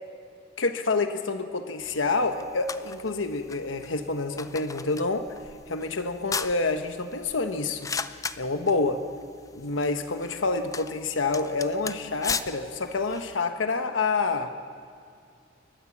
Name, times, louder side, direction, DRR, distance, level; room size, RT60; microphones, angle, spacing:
voice 1, 0.6-5.3 5.7-7.9 8.4-9.0 9.5-14.5, left 3 dB, 85° left, 8 dB, 1.1 m, -28 dB
sound 1, 1.8-13.4, left 5 dB, 15° left, 0.5 m, -38 dB
29.5 x 13.0 x 7.3 m, 2.4 s
head